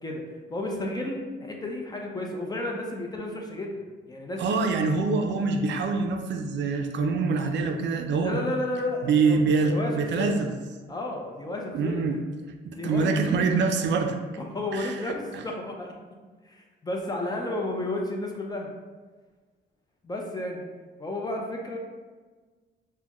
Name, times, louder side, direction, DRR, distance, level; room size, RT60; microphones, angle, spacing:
voice 1, 0.0-4.6 8.2-10.4 10.9-12.2 12.7-13.1 14.5-15.9 16.4-18.7 20.0-20.6 21.0-21.8, left 1 dB, 20° left, 0 dB, 0.6 m, -32 dB
voice 2, 4.4-8.4 9.0-10.5 11.7-12.2 12.6-14.2 14.7-15.0 15.3-15.4, right 4 dB, 65° right, 4 dB, 0.4 m, -25 dB
4.1 x 2.1 x 2.9 m, 1.4 s
cardioid pair, 90°, 20 cm